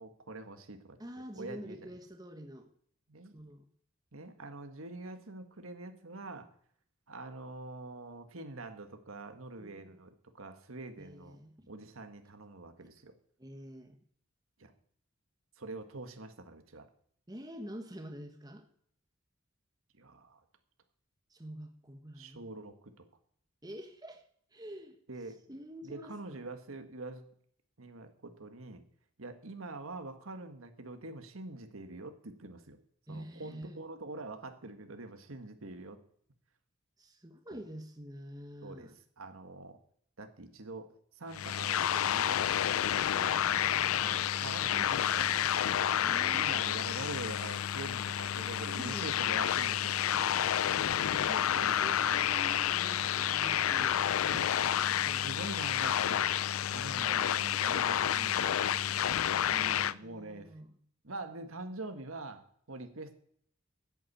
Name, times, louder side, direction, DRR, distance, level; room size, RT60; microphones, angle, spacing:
voice 1, 0.0-1.0 1.3-1.8 3.1-3.3 4.1-6.5 7.1-11.4 11.7-13.1 14.6-14.7 15.6-16.9 20.0-20.4 22.2-23.0 25.1-25.4 25.8-27.2 27.8-28.8 29.2-32.8 33.1-36.0 37.5-37.6 38.6-38.9 39.2-39.8 40.2-40.9 41.1-42.8 43.3-43.6 43.9-45.5 46.3-50.4 51.5-52.2 54.3-54.5 55.1-56.3 56.7-58.6 59.0-60.5 61.0-63.1, right 2 dB, 90° right, 7 dB, 1.7 m, -45 dB
voice 2, 1.0-2.7 3.3-3.7 9.6-10.0 11.0-11.5 13.4-14.0 17.3-18.7 21.3-22.4 23.6-24.2 24.5-25.0 25.5-26.5 33.1-33.8 37.0-39.0 43.2-43.9 46.0-46.8 48.4-49.2 50.6-55.4 59.7-60.7, equal, 20° right, 5 dB, 1.2 m, -47 dB
sound 1, 41.3-59.9, left 10 dB, 90° left, 0.4 m, -30 dB
10.5 x 8.6 x 8.6 m, 0.64 s
head